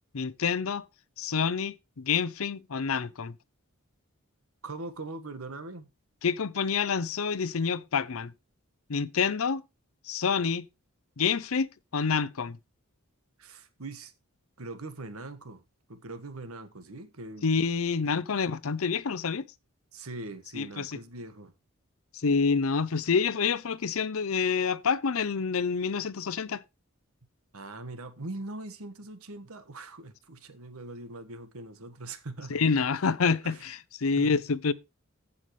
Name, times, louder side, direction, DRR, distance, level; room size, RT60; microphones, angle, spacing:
voice 1, 0.1-0.8 1.2-3.3 6.2-8.3 8.9-9.6 10.0-10.7 11.2-12.6 17.4-19.4 20.5-21.0 22.1-26.6 32.5-34.7, left 5 dB, 75° left, 0.6 m, -27 dB
voice 2, 4.6-5.9 13.4-14.1 14.6-15.6 15.9-17.4 19.9-21.5 27.5-32.6 33.4-33.7 34.2-34.4, right 2 dB, 85° right, 1.5 m, -41 dB
15.0 x 5.7 x 3.2 m
head